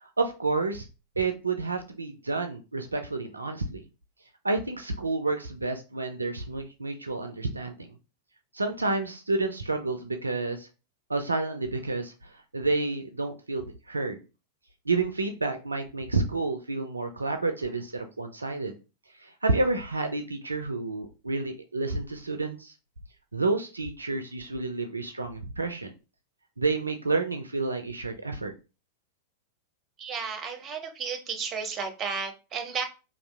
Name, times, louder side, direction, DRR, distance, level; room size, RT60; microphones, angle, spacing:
voice 1, 0.0-0.9 1.2-3.8 4.4-7.9 8.5-10.7 11.1-14.2 14.9-18.7 19.2-22.7 23.3-25.9 26.6-28.5, right 3 dB, 80° right, 6 dB, 0.3 m, -30 dB
voice 2, 30.0-32.9, right 5 dB, 30° right, 5 dB, 0.7 m, -33 dB
2.7 x 2.4 x 3.3 m, 0.31 s
figure-of-eight pair, 90°, 0 cm